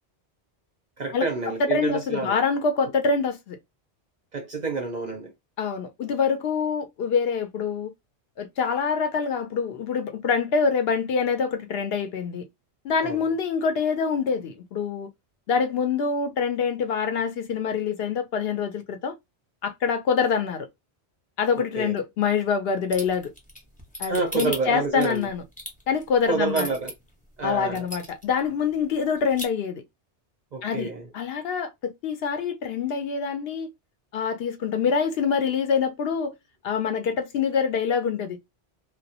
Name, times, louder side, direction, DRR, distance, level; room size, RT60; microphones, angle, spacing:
voice 1, 1.0-2.4 4.3-5.3 13.0-13.2 21.6-22.0 24.1-25.3 26.3-26.9 27.4-27.8 30.5-31.1, right 4 dB, 50° right, 0.5 m, -28 dB
voice 2, 1.6-3.6 5.6-7.9 8.4-12.4 12.8-15.1 15.5-19.1 19.6-20.7 21.4-23.3 24.0-25.4 25.9-26.7 27.4-29.8 30.6-33.7 34.1-36.3 36.6-38.4, left 6 dB, 65° left, 0.7 m, -25 dB
sound 1, 22.9-26.9 27.4-27.5 27.8-28.4 28.7-28.8 29.1-29.5, left 1 dB, 10° left, 0.6 m, -35 dB
2.2 x 2.1 x 2.6 m
omnidirectional pair, 1.2 m